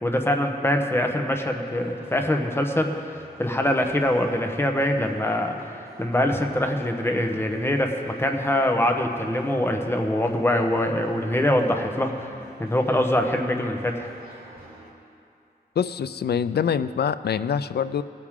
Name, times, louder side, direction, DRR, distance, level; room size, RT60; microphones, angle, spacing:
voice 1, 0.0-2.9 3.4-5.6 6.0-12.1 12.6-14.1, left 1 dB, 15° left, 3 dB, 1.0 m, -23 dB
sound 1, 1.7-14.9, right 2 dB, 60° right, 2.8 m, -48 dB
voice 2, 15.8-18.0, left 7 dB, 70° left, 14 dB, 0.4 m, -25 dB
19.5 x 9.6 x 3.7 m, 2.5 s
wide cardioid pair, 110°, 17 cm